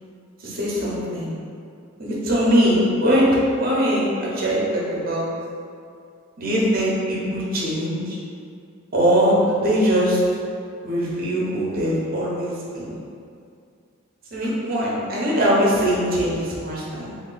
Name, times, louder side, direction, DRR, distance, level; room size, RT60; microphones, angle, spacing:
voice 1, 0.4-1.3 2.0-5.3 6.4-8.2 8.9-10.2 10.8-12.9 14.3-17.1, equal, 45° right, -5 dB, 0.8 m, -21 dB
2.9 x 2.4 x 3.8 m, 2.4 s
head